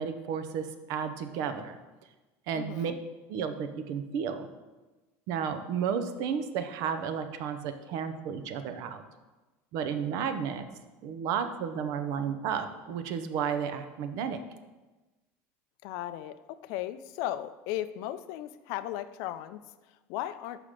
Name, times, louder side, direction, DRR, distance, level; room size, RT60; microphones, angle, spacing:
voice 1, 0.0-1.8 2.5-2.9 3.3-4.5 5.3-9.0 9.7-10.6 11.0-14.4, right 7 dB, 55° right, 9 dB, 0.6 m, -32 dB
voice 2, 2.5-3.0 15.8-20.6, left 13 dB, 60° left, 12 dB, 0.4 m, -36 dB
5.8 x 4.9 x 5.0 m, 1.2 s
cardioid pair, 160°, 7 cm